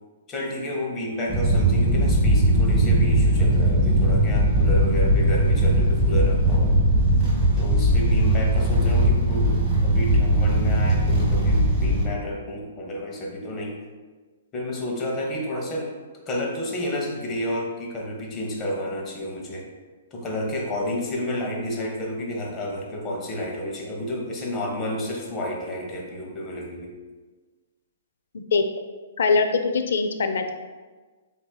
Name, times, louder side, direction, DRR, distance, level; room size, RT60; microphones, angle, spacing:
voice 1, 0.3-6.8 7.6-13.8 14.5-15.9 16.3-19.7 20.1-26.9, left 1 dB, 20° left, -1 dB, 0.9 m, -30 dB
sound 1, 1.3-12.1, right 1 dB, 15° right, 1.3 m, -19 dB
voice 2, 28.3-28.7 29.2-30.5, left 4 dB, 75° left, 7 dB, 0.4 m, -22 dB
7.6 x 2.7 x 2.3 m, 1.4 s
hypercardioid pair, 155°, 0 cm